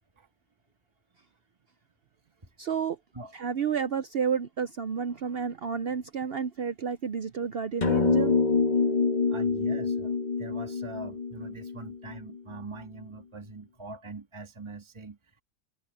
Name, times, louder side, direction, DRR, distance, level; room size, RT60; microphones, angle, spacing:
voice 1, 2.6-3.0 3.3-8.4, right 6 dB, 55° right, 0.7 m, -30 dB
sound 1, 7.8-12.3, left 4 dB, 30° left, 1.4 m, -26 dB
voice 2, 9.3-15.4, right 2 dB, 20° right, 2.2 m, -43 dB
omnidirectional pair, 1.6 m